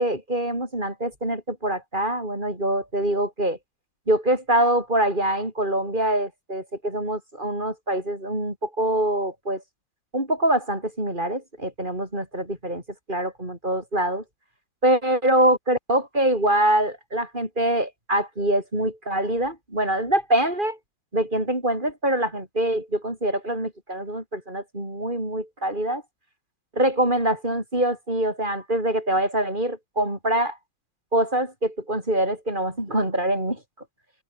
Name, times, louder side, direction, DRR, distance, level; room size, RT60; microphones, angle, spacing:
voice 1, 0.0-3.6 4.1-9.6 10.1-12.8 13.1-14.2 14.8-20.8 21.1-26.0 26.7-30.6 31.1-33.6, right 1 dB, 25° right, 7.3 m, -24 dB
omnidirectional pair, 2.2 m